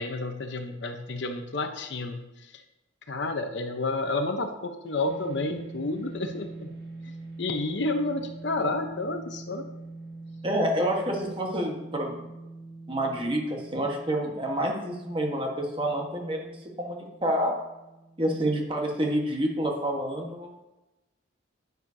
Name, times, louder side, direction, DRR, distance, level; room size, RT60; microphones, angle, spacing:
voice 1, 0.0-2.6 3.1-6.7 7.0-7.1 7.4-9.7, left 2 dB, 65° left, 6 dB, 0.8 m, -30 dB
sound 1, 5.0-19.5, right 2 dB, 55° right, 1.6 m, -44 dB
voice 2, 10.4-12.2 12.9-17.6 18.2-20.7, right 1 dB, 25° right, 1 dB, 1.3 m, -28 dB
10.0 x 9.3 x 2.7 m, 1.0 s
head